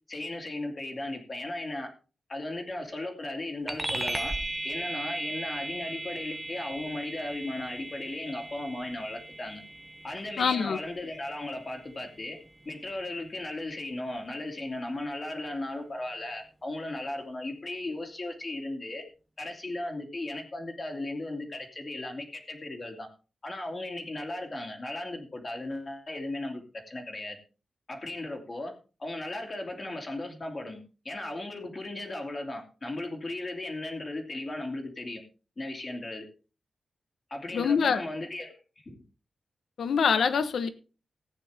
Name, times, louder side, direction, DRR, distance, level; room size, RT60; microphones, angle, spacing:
voice 1, 0.1-1.9 2.3-4.3 4.6-9.6 10.0-12.4 12.6-19.0 19.4-23.1 23.4-27.4 27.9-28.7 29.0-35.2 35.6-36.3 37.3-38.6 38.8-39.0, left 2 dB, 35° left, 2.6 m, -36 dB
sound 1, 3.7-13.5, right 1 dB, 15° right, 0.8 m, -38 dB
voice 2, 10.4-10.8 37.5-38.0 39.8-40.7, left 6 dB, 90° left, 1.1 m, -25 dB
15.0 x 9.2 x 3.5 m
wide cardioid pair, 135°, 0 cm